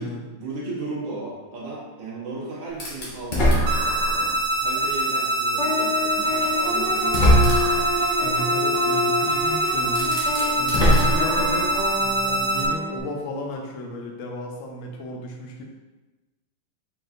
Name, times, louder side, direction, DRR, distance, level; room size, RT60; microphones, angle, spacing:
voice 1, 0.0-3.8 4.5-7.5, right 3 dB, 65° right, -6 dB, 1.8 m, -35 dB
sound 1, 2.8-4.4 5.0-5.1 6.3-6.4 7.0-7.9 9.4-9.5 9.9-11.8, equal, 35° left, 0.7 m, -21 dB
sound 2, 3.7-12.7, right 2 dB, 90° right, 1.5 m, -24 dB
sound 3, 5.6-13.0, left 3 dB, 60° left, 1.5 m, -28 dB
voice 2, 8.2-10.2 10.6-11.7 12.0-15.6, left 1 dB, 90° left, 1 dB, 0.7 m, -33 dB
4.6 x 4.5 x 2.5 m, 1.2 s
omnidirectional pair, 2.3 m